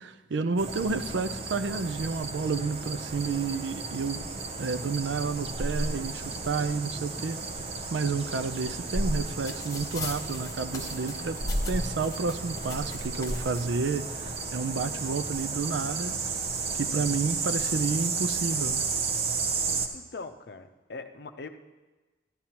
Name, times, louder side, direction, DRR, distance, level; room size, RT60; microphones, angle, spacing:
voice 1, 0.0-4.2 4.6-7.4 7.9-11.4 11.7-16.2 16.7-18.9, right 4 dB, 75° right, 12 dB, 0.5 m, -30 dB
sound 1, 0.6-19.9, right 3 dB, 35° right, 0.6 m, -33 dB
sound 2, 9.5-13.6 14.5-14.6 14.9-15.8 16.5-16.9, left 4 dB, 20° left, 0.8 m, -43 dB
voice 2, 19.9-21.5, left 3 dB, 55° left, 8 dB, 0.6 m, -41 dB
13.0 x 11.0 x 2.9 m, 1.2 s
head